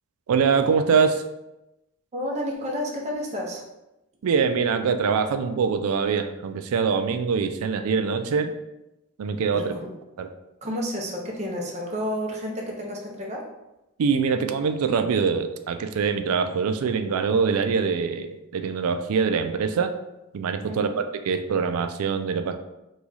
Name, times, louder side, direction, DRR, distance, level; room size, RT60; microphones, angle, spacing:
voice 1, 0.3-1.2 4.2-8.5 9.2-9.7 10.2-10.3 14.0-19.9 20.3-22.6, right 5 dB, 85° right, 8 dB, 0.4 m, -24 dB
voice 2, 2.1-3.6 9.5-9.9 10.6-13.5 20.7-21.0, equal, 30° right, -1 dB, 0.7 m, -31 dB
3.0 x 2.3 x 3.9 m, 0.94 s
head